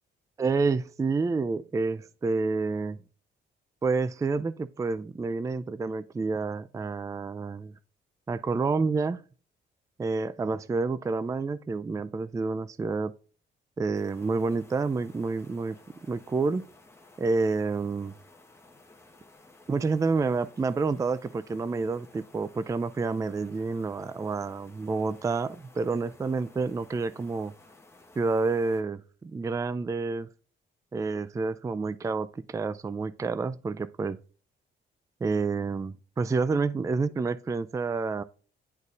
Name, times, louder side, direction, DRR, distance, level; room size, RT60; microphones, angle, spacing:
voice 1, 0.4-3.0 3.8-7.7 8.3-9.2 10.0-13.1 13.8-15.8 16.1-16.6 17.2-18.1 19.7-27.5 28.2-30.3 30.9-34.2 35.2-38.2, right 4 dB, 15° right, 0.4 m, -29 dB
sound 1, 13.9-28.8, left 2 dB, 15° left, 1.1 m, -56 dB
11.0 x 4.0 x 2.4 m
cardioid pair, 90°, 20 cm